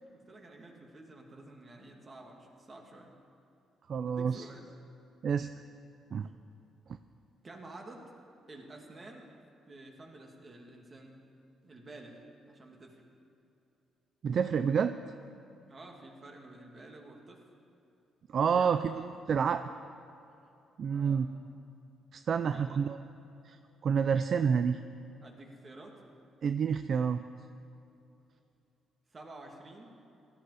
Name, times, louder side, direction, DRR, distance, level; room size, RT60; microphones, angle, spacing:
voice 1, 0.3-3.1 4.1-4.7 7.4-8.0 8.5-9.3 9.7-11.1 11.6-13.0 15.7-17.4 18.5-19.0 20.9-21.3 22.5-22.8 25.2-26.0 29.1-30.0, right 2 dB, 35° right, 1 dB, 2.4 m, -50 dB
voice 2, 3.9-4.4 5.2-5.5 6.1-6.3 14.2-15.0 18.3-19.6 20.8-21.3 22.1-23.0 23.5-23.6 23.8-24.8 26.4-27.2, right 6 dB, 55° right, 10 dB, 0.4 m, -28 dB
16.5 x 13.5 x 4.9 m, 2.7 s
cardioid pair, 90°, 0 cm